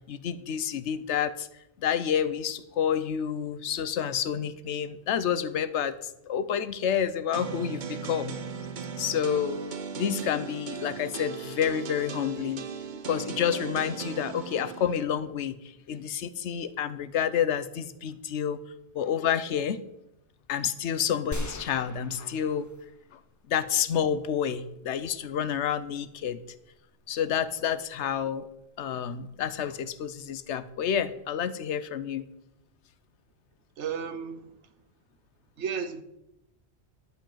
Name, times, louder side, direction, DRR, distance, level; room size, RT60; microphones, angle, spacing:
voice 1, 0.1-1.5 1.8-8.4 9.0-9.6 9.9-15.6 15.9-18.6 18.9-19.8 20.5-22.7 23.1-23.2 23.5-26.4 27.1-28.5 28.8-32.3, left 8 dB, 90° left, 1.0 m, -29 dB
sound 1, 7.3-14.9, right 6 dB, 50° right, 0.7 m, -37 dB
sound 2, 21.3-23.2 23.6-23.7, left 1 dB, 20° left, 0.7 m, -38 dB
voice 2, 33.8-34.6 35.6-36.0, right 6 dB, 90° right, 1.2 m, -33 dB
11.0 x 5.3 x 7.2 m
omnidirectional pair, 1.1 m